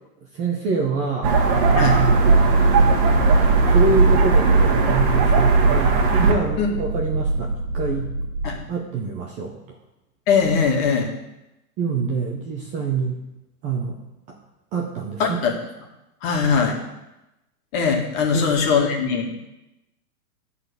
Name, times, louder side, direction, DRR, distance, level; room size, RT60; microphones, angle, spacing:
voice 1, 0.3-1.4 1.7-2.5 3.7-8.1 8.7-9.6 11.8-13.2 13.6-14.0 14.3-14.4 14.7-15.4 16.6-16.7 18.3-18.5, right 4 dB, 15° right, 0 dB, 0.5 m, -26 dB
sound 1, 1.2-6.3, right 4 dB, 40° right, 1.6 m, -17 dB
sound 2, 1.5-8.6, right 2 dB, 70° right, 1.9 m, -25 dB
voice 2, 1.7-2.0 6.6-6.7 8.4-8.6 10.3-11.1 15.2-15.5 16.2-16.8 17.7-19.4, left 5 dB, 40° left, 1 dB, 1.9 m, -21 dB
11.0 x 4.1 x 6.8 m, 0.95 s
hypercardioid pair, 145°, 46 cm